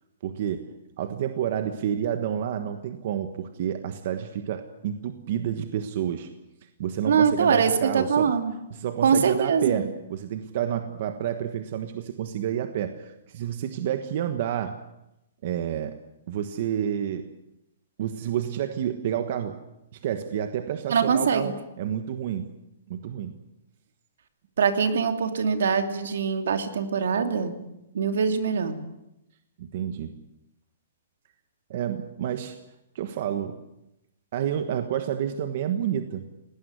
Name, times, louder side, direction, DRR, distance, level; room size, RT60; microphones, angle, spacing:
voice 1, 0.2-6.3 6.6-8.3 8.7-14.8 15.4-16.0 16.3-17.3 18.0-19.6 19.9-22.6 22.9-23.4 29.6-30.1 31.7-32.6 32.9-33.6 34.3-36.3, right 9 dB, 40° right, 8 dB, 1.3 m, -29 dB
voice 2, 7.1-8.5 9.0-9.9 20.9-21.5 24.6-27.6 27.9-28.7, right 6 dB, 70° right, 7 dB, 2.8 m, -23 dB
21.0 x 18.5 x 9.7 m, 0.88 s
hypercardioid pair, 180°, 0 cm